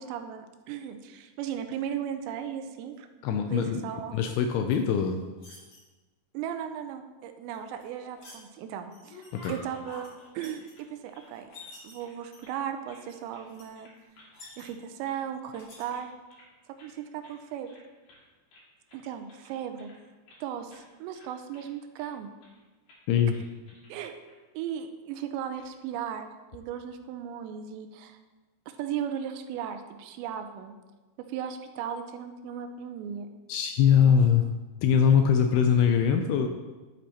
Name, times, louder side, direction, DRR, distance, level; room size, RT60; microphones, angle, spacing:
voice 1, 0.0-3.1 3.5-4.2 6.3-9.2 9.5-11.5 11.8-13.9 14.6-16.1 16.8-17.7 18.9-19.9 20.4-22.3 23.9-24.2 24.5-28.2 28.7-30.7 31.2-33.3 33.9-34.2, right 9 dB, 90° right, 7 dB, 2.9 m, -36 dB
voice 2, 3.2-3.8 4.1-5.2 9.3-9.5 23.1-23.4 33.5-34.5 34.8-36.5, left 7 dB, 85° left, 5 dB, 2.4 m, -22 dB
sound 1, 4.7-5.8 7.5-8.4 8.9-9.5 9.8-10.7 11.3-11.9 12.3-12.7 13.1-13.2 13.4-13.6 14.0-15.0 15.6-15.8, left 2 dB, 40° left, 2.5 m, -50 dB
sound 2, 7.6-8.4 8.8-11.7 12.0-13.0 13.3-13.5 13.7-14.3 14.6-15.2 15.5-16.5 16.8-17.0 17.2-17.4 17.6-18.2 18.5-20.4 20.7-20.9 21.1-22.1 22.4-22.6 22.9-23.0 23.3-23.9 24.3-24.4 25.3-25.7, left 2 dB, 55° left, 3.6 m, -53 dB
11.5 x 8.3 x 2.9 m, 1.2 s
omnidirectional pair, 5.1 m